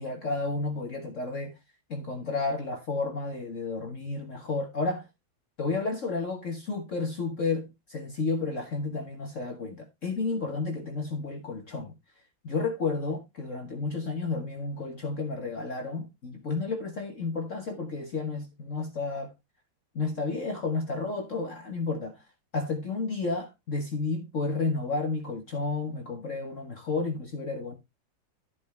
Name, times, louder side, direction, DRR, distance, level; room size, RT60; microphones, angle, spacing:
voice 1, 0.0-1.5 1.9-5.1 5.6-11.9 12.4-19.3 19.9-22.2 22.5-27.7, left 3 dB, 45° left, 1.6 m, -31 dB
13.0 x 5.3 x 3.2 m
omnidirectional pair, 2.0 m